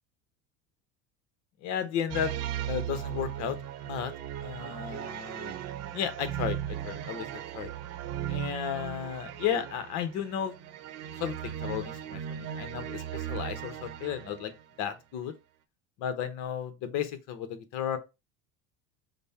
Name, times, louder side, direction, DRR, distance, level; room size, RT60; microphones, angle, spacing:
voice 1, 1.6-2.3 2.7-3.6 3.8-4.1 4.4-5.6 5.9-7.7 8.3-10.5 11.2-14.5 14.8-15.3 16.0-18.0, left 9 dB, 60° left, 1.0 m, -34 dB
sound 1, 2.1-14.6, right 11 dB, 50° right, 0.8 m, -37 dB
5.2 x 2.2 x 4.2 m
supercardioid pair, 100°, 33 cm